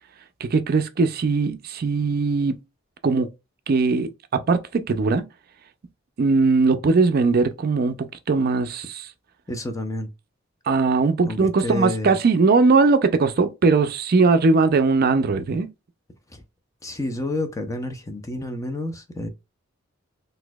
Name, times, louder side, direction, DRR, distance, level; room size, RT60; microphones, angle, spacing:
voice 1, 0.4-2.6 3.0-3.3 3.7-5.2 6.2-8.8 10.7-15.7, right 4 dB, 50° right, 0.4 m, -20 dB
voice 2, 9.5-10.1 11.2-12.2 16.3-16.4 16.8-19.3, left 1 dB, 15° left, 0.5 m, -29 dB
4.0 x 2.6 x 2.2 m
head